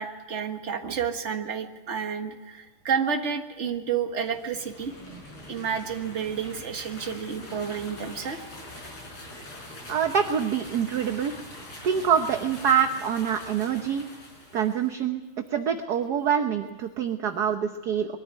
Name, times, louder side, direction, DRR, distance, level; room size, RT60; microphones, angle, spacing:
voice 1, 0.0-5.2 5.5-8.4, right 7 dB, 35° right, 5 dB, 1.7 m, -30 dB
sound 1, 4.1-14.9, left 1 dB, 90° left, 6.2 m, -43 dB
voice 2, 9.9-11.3 11.8-14.1 14.5-15.2 15.5-18.2, right 8 dB, 55° right, 6 dB, 1.3 m, -25 dB
22.5 x 14.0 x 9.7 m, 1.3 s
omnidirectional pair, 2.4 m